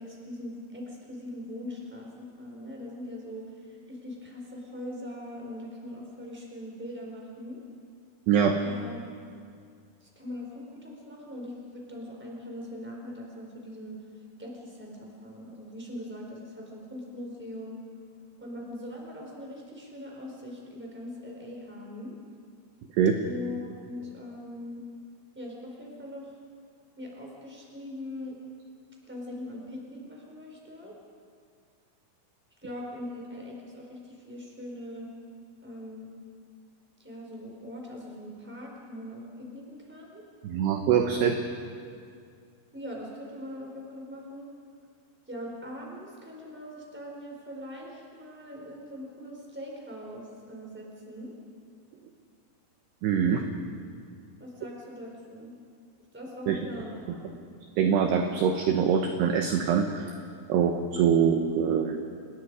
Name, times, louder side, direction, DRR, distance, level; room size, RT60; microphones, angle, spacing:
voice 1, 0.0-7.6 8.6-9.0 10.0-14.0 14.4-17.8 18.4-22.2 23.2-24.8 25.3-26.4 27.0-28.4 29.0-30.9 32.6-35.1 35.6-36.1 37.0-40.2 42.7-44.5 45.3-51.3 54.4-55.5 56.1-57.2, left 1 dB, ahead, -2 dB, 4.0 m, -41 dB
voice 2, 40.4-41.4 53.0-53.4 56.5-56.6 57.8-60.2 60.5-62.0, right 7 dB, 70° right, 4 dB, 2.7 m, -24 dB
29.0 x 21.0 x 5.0 m, 2.2 s
omnidirectional pair, 5.8 m